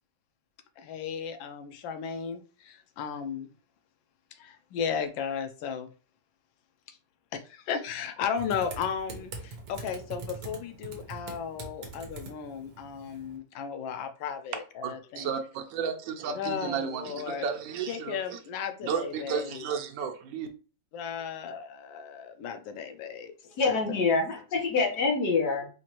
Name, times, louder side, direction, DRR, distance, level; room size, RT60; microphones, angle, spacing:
voice 1, 0.8-3.5 4.4-5.9 7.3-15.3 16.4-17.5 17.9-19.6 20.9-23.3 23.6-24.0, left 7 dB, 85° left, 1.3 m, -35 dB
Typing, 8.4-13.4, right 3 dB, 65° right, 1.5 m, -43 dB
voice 2, 14.8-18.4 18.8-20.5, right 7 dB, 85° right, 1.3 m, -33 dB
voice 3, 23.6-25.7, left 4 dB, 60° left, 1.6 m, -26 dB
4.4 x 2.5 x 2.9 m
omnidirectional pair, 2.0 m